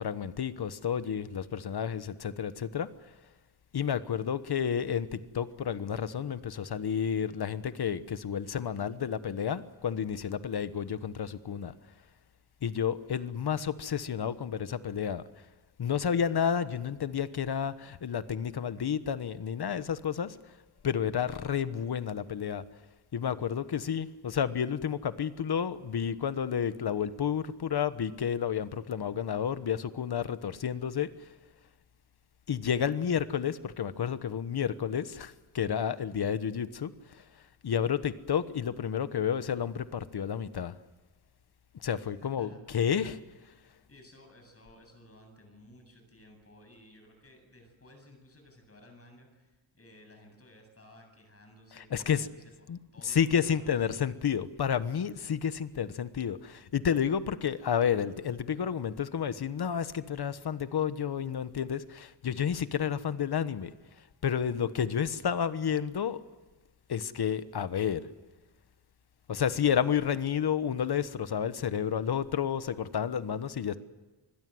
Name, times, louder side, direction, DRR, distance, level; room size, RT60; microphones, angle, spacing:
voice 1, 0.0-2.9 3.7-11.7 12.6-15.2 15.8-20.4 20.8-22.6 23.1-31.1 32.5-37.2 37.6-40.8 41.7-43.2 51.7-52.3 52.7-52.8 53.0-63.7 64.2-66.2 66.9-68.0 69.3-73.8, left 8 dB, 55° left, 13 dB, 1.3 m, -31 dB
voice 2, 41.9-42.6 43.9-52.7 52.9-53.7, left 1 dB, 30° left, 4 dB, 7.9 m, -56 dB
27.5 x 21.0 x 7.9 m, 1.2 s
wide cardioid pair, 130°, 47 cm